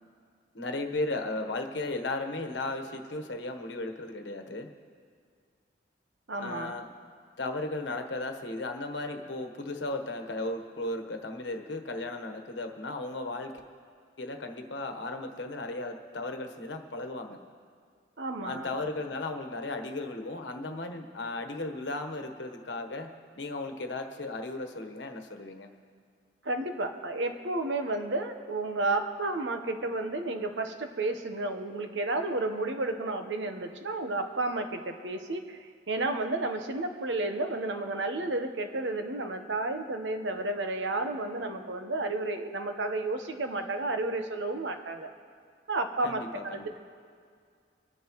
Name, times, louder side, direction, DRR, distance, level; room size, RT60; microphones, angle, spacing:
voice 1, 0.5-4.7 6.4-6.9 7.4-13.5 14.2-17.4 18.4-25.7 46.0-46.7, left 2 dB, 80° left, 6 dB, 1.2 m, -35 dB
voice 2, 6.3-6.7 18.2-18.7 26.4-35.6 35.9-45.1 45.7-46.8, right 2 dB, 80° right, 6 dB, 1.0 m, -32 dB
25.0 x 11.0 x 3.1 m, 2.1 s
head